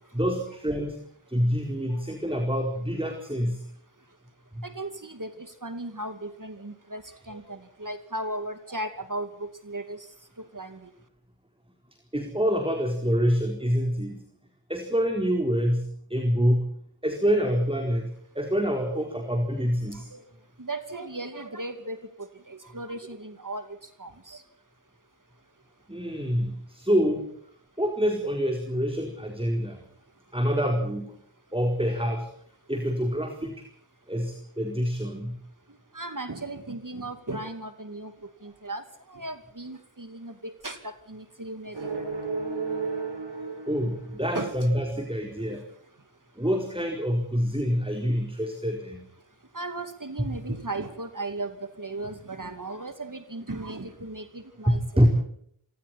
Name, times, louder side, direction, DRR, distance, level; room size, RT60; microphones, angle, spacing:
voice 1, 0.1-1.0 1.3-3.6 4.5-4.6 12.1-14.2 14.7-16.7 17.0-20.1 25.9-27.2 27.8-29.8 30.3-31.1 31.5-32.3 32.7-33.6 34.1-35.4 43.7-45.6 46.4-49.1 54.7-55.2, equal, 10° right, 3 dB, 4.4 m, -26 dB
voice 2, 4.6-10.0 10.5-10.8 19.6-19.7 19.9-20.2 20.6-22.0 22.5-23.6 24.0-24.4 35.9-38.1 38.4-38.8 39.1-42.0 44.3-44.5 46.5-46.6 49.5-55.1, right 2 dB, 40° right, 8 dB, 2.6 m, -36 dB
sound 1, 41.7-44.6, right 4 dB, 60° right, 6.3 m, -33 dB
26.5 x 25.0 x 4.4 m, 0.66 s
wide cardioid pair, 50°, 49 cm